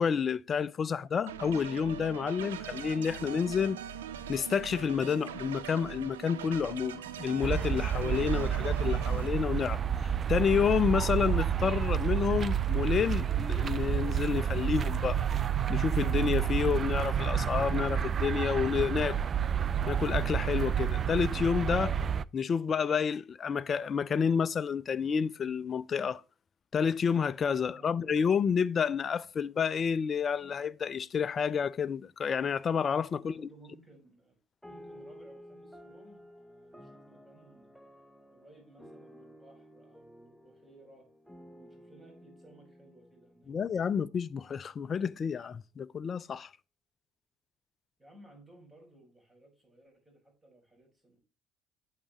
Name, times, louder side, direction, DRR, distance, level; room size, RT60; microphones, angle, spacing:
voice 1, 0.0-3.8 4.3-15.2 15.7-19.2 19.9-22.0 22.3-26.2 26.7-33.5 43.5-46.5, left 6 dB, 40° left, 0.4 m, -29 dB
sound 1, 1.3-9.3, right 9 dB, 80° right, 0.6 m, -41 dB
sound 2, 7.4-22.2, right 8 dB, 40° right, 0.3 m, -29 dB
voice 2, 33.1-34.3 34.6-37.8 38.3-41.1 41.5-43.6 48.0-51.2, right 2 dB, 20° right, 5.3 m, -58 dB
sound 3, 34.6-44.4, equal, ahead, 0.9 m, -54 dB
8.6 x 7.5 x 3.0 m
figure-of-eight pair, 55°, 0 cm